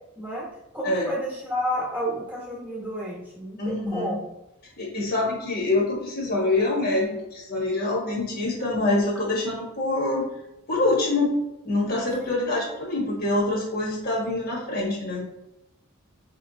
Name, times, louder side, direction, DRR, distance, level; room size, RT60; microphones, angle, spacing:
voice 1, 0.1-0.5 0.7-4.3 12.2-12.4, equal, 10° right, -6 dB, 1.2 m, -31 dB
voice 2, 3.6-4.2 4.8-10.3 10.7-11.4 11.6-15.2, left 2 dB, 45° left, -3 dB, 1.2 m, -25 dB
4.6 x 3.0 x 2.7 m, 0.90 s
head